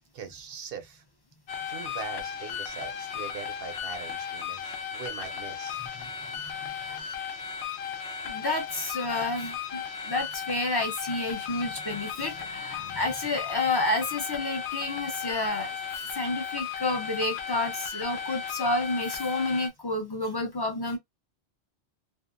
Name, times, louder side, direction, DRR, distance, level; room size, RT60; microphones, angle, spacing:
voice 1, 0.1-1.0 1.7-5.8, right 6 dB, 65° right, 0.8 m, -41 dB
sound 1, 1.5-19.7, left 7 dB, 75° left, 0.8 m, -36 dB
voice 2, 5.8-6.4 6.9-7.0 8.2-21.0, left 2 dB, 30° left, 0.5 m, -30 dB
2.7 x 2.3 x 2.4 m
omnidirectional pair, 1.1 m